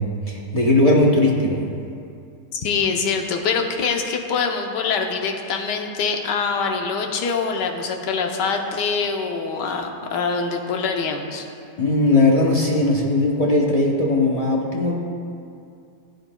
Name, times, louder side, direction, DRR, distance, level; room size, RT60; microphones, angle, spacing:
voice 1, 0.0-1.6 11.8-15.0, left 2 dB, 35° left, -2 dB, 0.6 m, -18 dB
voice 2, 2.5-11.4, left 5 dB, 90° left, 3 dB, 1.4 m, -24 dB
15.5 x 7.9 x 2.2 m, 2.5 s
omnidirectional pair, 1.8 m